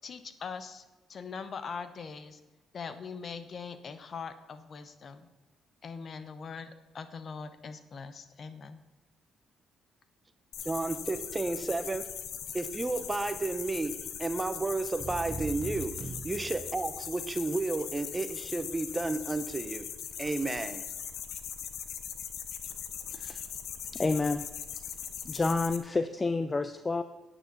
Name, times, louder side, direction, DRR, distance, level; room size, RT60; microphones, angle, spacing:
voice 1, 0.0-0.8 1.1-2.4 2.7-5.3 5.8-8.8, left 5 dB, 50° left, 11 dB, 0.9 m, -42 dB
sound 1, 10.5-25.8, left 8 dB, 75° left, 0.9 m, -40 dB
voice 2, 10.6-12.0 12.5-13.9 14.2-15.9 16.2-19.9 20.2-20.8, right 3 dB, 20° right, 11 dB, 0.8 m, -32 dB
sound 2, 15.0-17.2, right 3 dB, 45° right, 2.8 m, -41 dB
voice 3, 23.1-23.4 23.9-24.5 25.2-27.0, left 3 dB, 25° left, 10 dB, 0.5 m, -29 dB
10.5 x 9.1 x 4.1 m, 1.1 s
cardioid pair, 90°, 0 cm